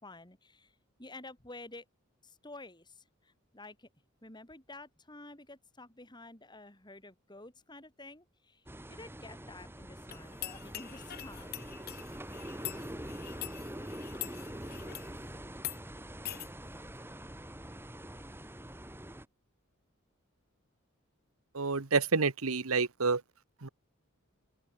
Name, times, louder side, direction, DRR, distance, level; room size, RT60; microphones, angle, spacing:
voice 1, 0.0-1.9 2.2-3.9 4.2-11.6, left 2 dB, 20° left, 5.4 m, -51 dB
sound 1, 8.7-19.3, right 1 dB, 10° right, 3.9 m, -45 dB
sound 2, 10.1-15.1 15.6-15.8 16.3-16.5, left 14 dB, 45° left, 0.8 m, -44 dB
voice 2, 21.5-23.2 23.6-23.7, right 4 dB, 90° right, 1.3 m, -28 dB
head